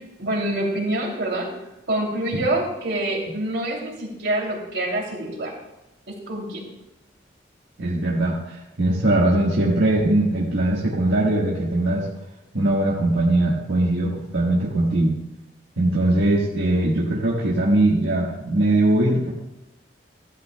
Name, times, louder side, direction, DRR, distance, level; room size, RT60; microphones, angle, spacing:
voice 1, 0.2-1.5 1.9-5.5 6.3-6.6, right 1 dB, 70° right, -1 dB, 2.8 m, -26 dB
voice 2, 7.8-12.1 12.5-15.2 15.8-19.3, right 1 dB, 85° right, -5 dB, 1.5 m, -21 dB
15.0 x 12.0 x 2.2 m, 0.96 s
head